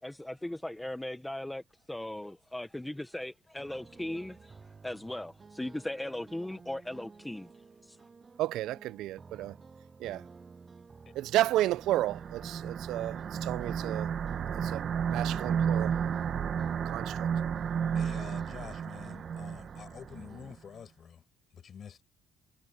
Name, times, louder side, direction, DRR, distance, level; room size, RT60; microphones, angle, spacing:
voice 1, 0.0-1.6 1.9-4.6 4.8-7.5 7.8-8.0, left 1 dB, 5° left, 0.8 m, -38 dB
sound 1, 3.6-20.6, right 4 dB, 20° right, 7.6 m, -52 dB
voice 2, 8.4-9.5 10.0-10.2 11.2-14.1 14.6-14.8 15.1-15.9 16.9-17.3, right 15 dB, 65° right, 0.3 m, -32 dB
sound 2, 11.6-20.3, right 7 dB, 35° right, 0.8 m, -32 dB
voice 3, 17.9-21.2 21.5-22.0, left 7 dB, 35° left, 6.4 m, -47 dB
cardioid pair, 175°, 0 cm